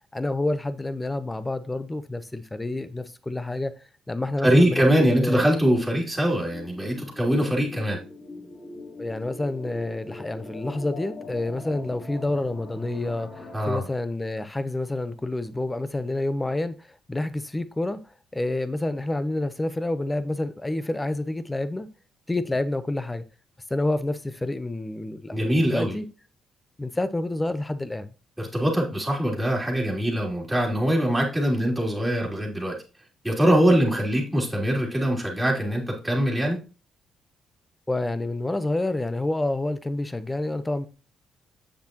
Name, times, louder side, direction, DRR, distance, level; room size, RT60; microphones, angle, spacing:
voice 1, 0.1-3.7 4.1-5.5 9.0-16.7 17.1-18.0 18.3-21.9 22.3-23.2 23.7-26.0 26.8-28.1 37.9-40.9, left 2 dB, 15° left, 0.8 m, -28 dB
sound 1, 4.3-13.6, left 2 dB, 35° left, 3.9 m, -42 dB
voice 2, 4.4-8.0 13.5-13.8 25.3-26.0 28.4-32.7 33.2-36.6, equal, 5° right, 3.2 m, -23 dB
7.7 x 6.8 x 3.0 m
cardioid pair, 90°, 0 cm